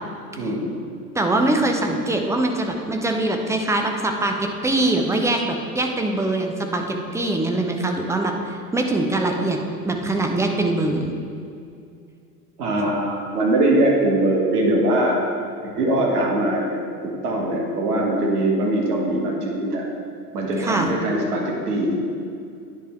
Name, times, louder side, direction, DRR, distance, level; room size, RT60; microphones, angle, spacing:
voice 1, 0.4-0.7 12.6-15.2 15.6-19.8 20.3-22.0, right 1 dB, 70° right, -1 dB, 1.5 m, -22 dB
voice 2, 1.1-9.6 9.9-11.1 20.6-20.9, right 2 dB, 5° right, 3 dB, 0.5 m, -23 dB
10.0 x 3.7 x 4.5 m, 2.4 s
figure-of-eight pair, 75°, 47 cm